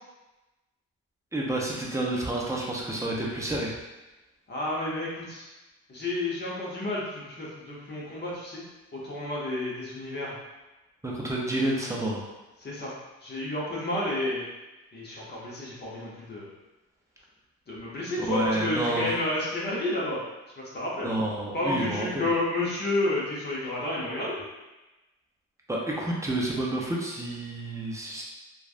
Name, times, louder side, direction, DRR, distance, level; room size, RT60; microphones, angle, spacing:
voice 1, 1.3-3.7 11.0-12.2 18.2-19.1 21.0-22.3 25.7-28.2, right 1 dB, 10° right, -3 dB, 0.6 m, -29 dB
voice 2, 4.5-5.5 5.9-8.6 8.9-10.4 12.6-12.9 13.2-14.4 14.9-16.5 17.7-20.2 20.6-21.1 21.5-24.4, left 2 dB, 35° left, -6 dB, 0.9 m, -30 dB
3.1 x 2.3 x 2.5 m, 1.1 s
cardioid pair, 90°, 30 cm